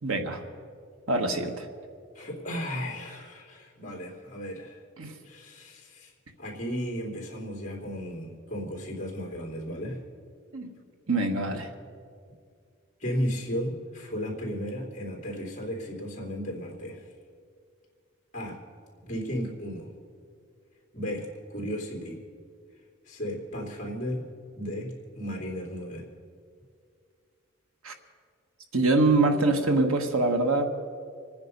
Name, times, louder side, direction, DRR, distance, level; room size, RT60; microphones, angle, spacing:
voice 1, 0.0-0.4 1.1-1.7 5.0-5.1 10.5-10.7 11.1-11.7 27.8-27.9 28.7-30.6, right 2 dB, 90° right, 5 dB, 1.5 m, -24 dB
voice 2, 2.1-4.8 5.2-6.1 6.4-10.0 13.0-17.1 18.3-18.6 19.0-19.9 20.9-22.2 23.0-24.2 24.5-26.0, equal, 35° left, -2 dB, 3.3 m, -34 dB
26.5 x 9.6 x 5.4 m, 2.2 s
head